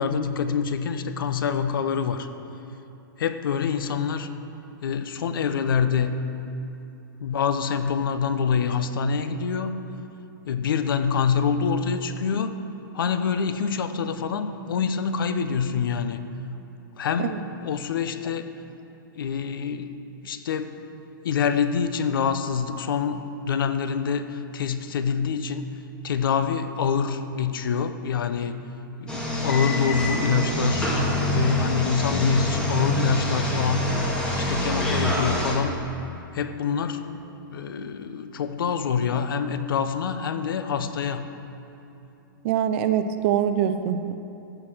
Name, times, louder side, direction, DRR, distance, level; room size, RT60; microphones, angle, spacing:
voice 1, 0.0-2.3 3.2-4.3 4.8-6.1 7.2-9.8 10.5-12.6 12.9-16.2 17.0-18.5 19.2-19.9 20.2-20.7 21.2-23.2 23.5-25.7 26.0-28.6 29.0-30.9 31.2-33.9 34.4-35.8 36.3-37.1 37.5-41.3, left 6 dB, 75° left, 10 dB, 0.8 m, -26 dB
sound 1, 29.1-35.5, left 1 dB, 5° left, 1.3 m, -26 dB
voice 2, 42.4-44.1, right 9 dB, 30° right, 10 dB, 0.5 m, -24 dB
14.5 x 5.8 x 6.1 m, 2.9 s
hypercardioid pair, 165°, 12 cm